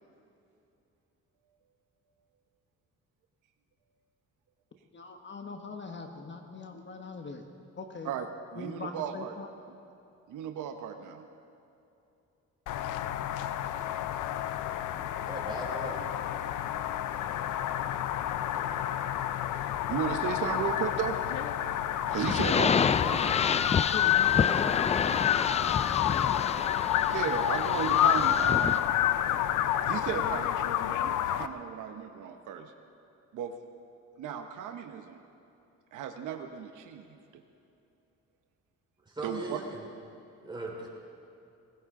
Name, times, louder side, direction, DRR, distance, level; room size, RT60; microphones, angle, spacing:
voice 1, 4.9-7.5 7.8-8.1 8.6-9.5 23.9-25.4, left 4 dB, 40° left, 5 dB, 1.3 m, -41 dB
voice 2, 8.0-9.3 10.3-11.3 18.6-19.0 19.5-21.2 22.1-23.4 27.1-28.8 29.3-29.4 29.9-32.7 33.3-33.6 34.2-35.2 35.9-37.4 39.2-39.6, right 8 dB, 85° right, 6 dB, 1.1 m, -35 dB
sound 1, 12.7-31.5, left 11 dB, 85° left, 0.7 m, -29 dB
voice 3, 15.2-16.3 39.0-39.8 40.4-40.9, right 2 dB, 15° right, -3 dB, 4.7 m, -39 dB
sound 2, 22.1-28.8, left 6 dB, 25° left, 0.3 m, -29 dB
20.0 x 19.0 x 3.8 m, 2.8 s
cardioid pair, 90°, 30 cm